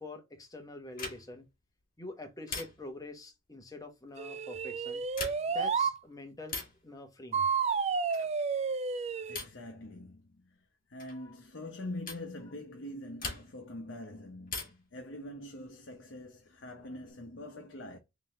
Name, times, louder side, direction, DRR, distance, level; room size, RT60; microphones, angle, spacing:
voice 1, 0.0-1.4 2.0-5.0 5.5-6.6 6.8-7.5 11.2-11.3, left 2 dB, 20° left, 1.0 m, -45 dB
sound 1, 0.9-1.5 2.5-3.1 5.0-5.7 6.5-6.9 8.1-8.4 9.3-9.7 11.0-11.2 12.1-12.3 13.2-13.7 14.5-15.0 16.4-17.1, left 4 dB, 45° left, 1.9 m, -41 dB
sound 2, 4.2-6.0 7.3-9.4, right 5 dB, 30° right, 0.4 m, -31 dB
voice 2, 9.2-10.6 10.9-18.0, left 1 dB, 60° left, 0.8 m, -44 dB
3.8 x 3.3 x 3.6 m
head